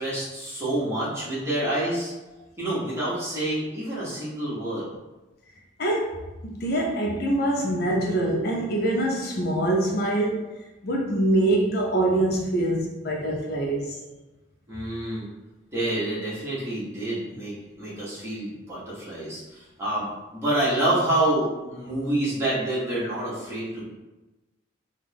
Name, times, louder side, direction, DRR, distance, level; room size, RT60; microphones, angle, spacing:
voice 1, 0.0-2.1 2.6-4.9 14.7-15.3 15.7-20.1 20.3-23.9, right 1 dB, 15° right, -9 dB, 1.3 m, -27 dB
voice 2, 5.8-14.0, right 1 dB, 50° left, -1 dB, 0.5 m, -24 dB
3.5 x 2.3 x 3.4 m, 1.1 s
head